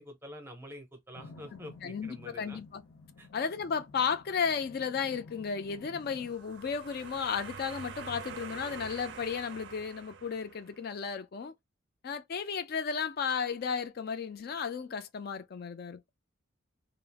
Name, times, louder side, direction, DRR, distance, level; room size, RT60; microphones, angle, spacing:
voice 1, 0.0-2.6 3.2-3.3, equal, 10° right, 0.6 m, -47 dB
sound 1, 1.1-6.3, left 3 dB, 90° left, 0.6 m, -52 dB
voice 2, 1.8-2.8 3.3-11.5 12.0-16.1, left 6 dB, 45° left, 0.3 m, -34 dB
sound 2, 6.1-10.9, right 6 dB, 55° right, 0.4 m, -46 dB
2.4 x 2.0 x 3.3 m
head